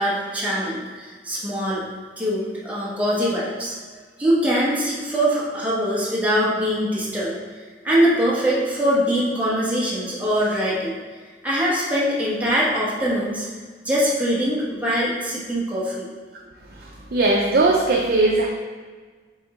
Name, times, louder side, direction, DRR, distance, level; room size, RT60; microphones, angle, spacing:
voice 1, 0.0-1.8 2.2-3.7 4.2-7.3 7.8-11.0 11.4-13.5 13.8-16.1, equal, 10° right, -7 dB, 1.3 m, -22 dB
voice 2, 17.1-18.5, right 2 dB, 55° right, 0 dB, 0.5 m, -18 dB
7.5 x 3.6 x 3.7 m, 1.4 s
head